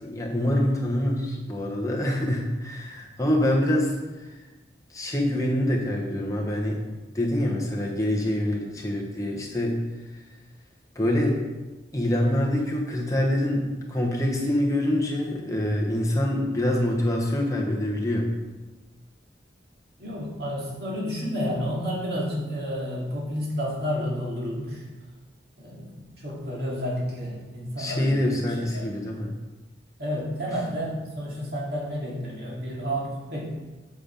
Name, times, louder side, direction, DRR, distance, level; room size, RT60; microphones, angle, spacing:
voice 1, 0.0-4.0 4.3-4.4 4.9-6.8 7.1-9.8 10.1-10.2 10.9-11.4 11.9-18.3 27.8-29.3, left 1 dB, 20° left, -1 dB, 1.2 m, -25 dB
voice 2, 20.0-24.8 25.6-28.8 30.0-33.5, equal, 55° right, -4 dB, 2.5 m, -31 dB
7.7 x 6.0 x 5.3 m, 1.2 s
head